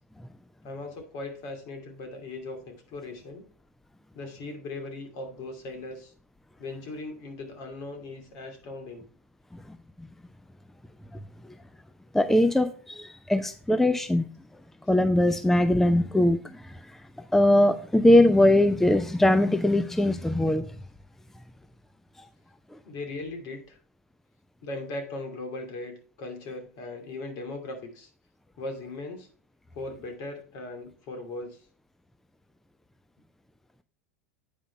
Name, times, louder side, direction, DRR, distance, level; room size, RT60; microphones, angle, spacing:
voice 1, 0.6-3.4 4.1-6.1 6.6-9.0 22.8-23.8 24.6-28.1 28.6-29.3 29.7-31.6, left 2 dB, 55° left, 4 dB, 2.5 m, -38 dB
voice 2, 9.5-10.1 11.1-11.5 12.1-14.3 14.9-17.0 17.3-20.7 22.2-22.3 22.7-22.8, left 1 dB, 5° left, 12 dB, 0.5 m, -22 dB
8.8 x 5.0 x 4.3 m, 0.42 s
hypercardioid pair, 95°, 8 cm